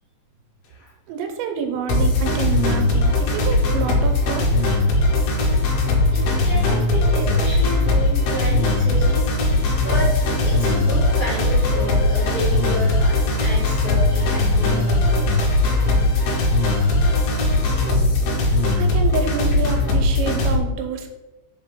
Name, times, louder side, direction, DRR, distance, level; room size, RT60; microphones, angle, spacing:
voice 1, 1.1-4.7 18.8-21.1, right 6 dB, 85° right, 5 dB, 2.9 m, -28 dB
sound 1, 1.9-20.6, left 2 dB, 70° left, 2.7 m, -19 dB
voice 2, 6.1-15.3 17.8-18.0 18.2-18.4, equal, 45° left, -8 dB, 2.6 m, -30 dB
5.6 x 4.9 x 3.6 m, 1.1 s
omnidirectional pair, 5.2 m